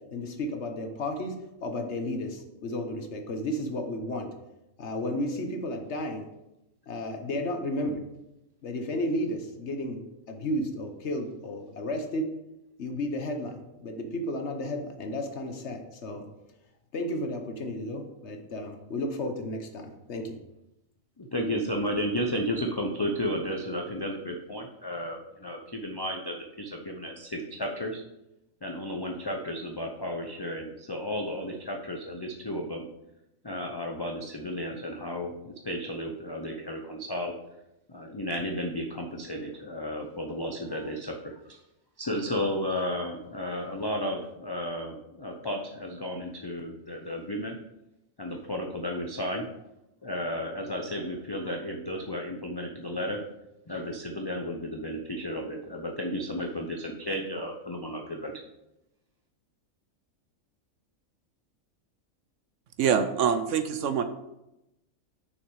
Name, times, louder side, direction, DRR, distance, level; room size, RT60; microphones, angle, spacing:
voice 1, 0.1-1.3 1.6-4.3 4.8-6.3 6.9-8.0 8.6-12.2 12.8-16.2 16.9-20.4, left 1 dB, 55° left, 4 dB, 1.2 m, -33 dB
voice 2, 21.2-28.0 28.6-32.9 33.4-37.3 37.9-41.6 42.0-47.6 48.2-49.5 50.0-53.3 53.7-58.3, equal, 30° left, 1 dB, 0.4 m, -33 dB
voice 3, 62.8-64.0, right 7 dB, 70° right, 9 dB, 0.9 m, -25 dB
6.4 x 6.2 x 4.7 m, 0.90 s
omnidirectional pair, 1.5 m